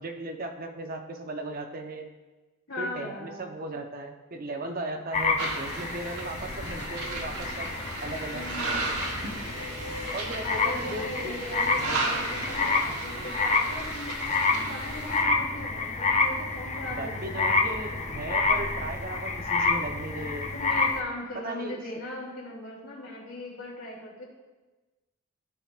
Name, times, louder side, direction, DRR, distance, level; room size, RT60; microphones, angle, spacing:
voice 1, 0.0-2.1 2.8-7.7 8.0-8.5 10.1-11.4 11.9-12.1 16.9-20.5 21.3-21.8, right 2 dB, 40° right, 5 dB, 0.7 m, -36 dB
voice 2, 2.7-3.5 8.3-8.9 10.4-17.5 20.5-24.2, left 2 dB, 80° left, -3 dB, 2.7 m, -39 dB
sound 1, 5.1-21.0, left 3 dB, 30° left, 0.6 m, -29 dB
sound 2, 5.4-15.2, right 2 dB, 85° right, 1.2 m, -35 dB
14.5 x 5.9 x 2.4 m, 1.2 s
head